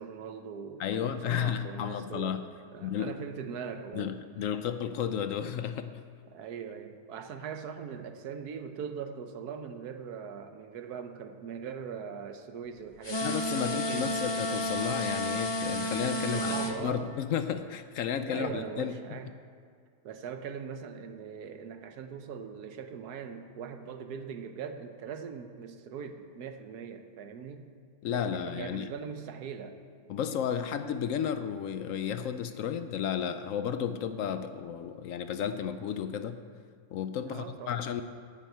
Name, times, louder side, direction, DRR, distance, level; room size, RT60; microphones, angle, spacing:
voice 1, 0.0-2.4 2.7-4.2 6.3-13.4 13.7-14.2 16.3-17.1 18.3-19.3 20.0-27.6 28.1-29.8 37.3-37.9, right 7 dB, 80° right, 8 dB, 1.3 m, -41 dB
voice 2, 0.8-2.5 2.8-3.2 3.9-5.9 13.2-19.2 28.0-28.9 30.1-36.4 36.9-38.0, left 8 dB, 70° left, 10 dB, 0.8 m, -33 dB
sound 1, 13.0-16.7, left 1 dB, 30° left, 0.5 m, -31 dB
9.3 x 7.4 x 9.2 m, 2.1 s
omnidirectional pair, 1.7 m